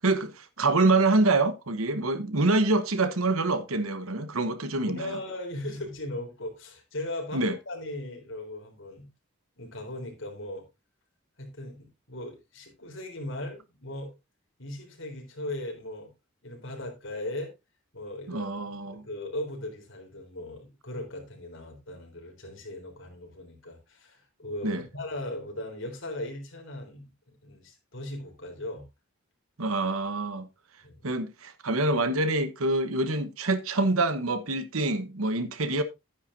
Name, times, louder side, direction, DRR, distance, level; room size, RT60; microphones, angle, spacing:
voice 1, 0.0-5.2 7.3-7.5 18.3-19.0 24.6-24.8 29.6-30.5 31.0-35.8, right 2 dB, 90° right, 1.2 m, -26 dB
voice 2, 4.9-9.1 9.6-10.7 11.4-14.1 14.6-16.1 16.4-17.5 17.9-18.5 18.8-28.8 30.8-31.1, left 1 dB, 60° left, 4.1 m, -38 dB
11.5 x 9.8 x 2.7 m
head